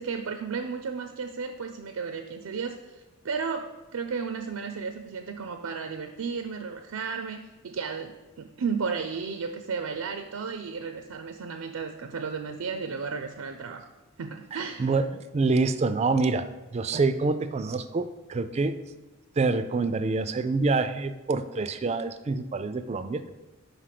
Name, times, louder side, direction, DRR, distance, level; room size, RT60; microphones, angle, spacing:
voice 1, 0.0-13.9 14.2-14.9, right 5 dB, 90° right, 6 dB, 0.5 m, -34 dB
voice 2, 14.5-16.5 16.7-18.8 19.4-23.3, right 3 dB, 30° right, 11 dB, 0.3 m, -26 dB
5.4 x 4.9 x 5.8 m, 1.1 s
head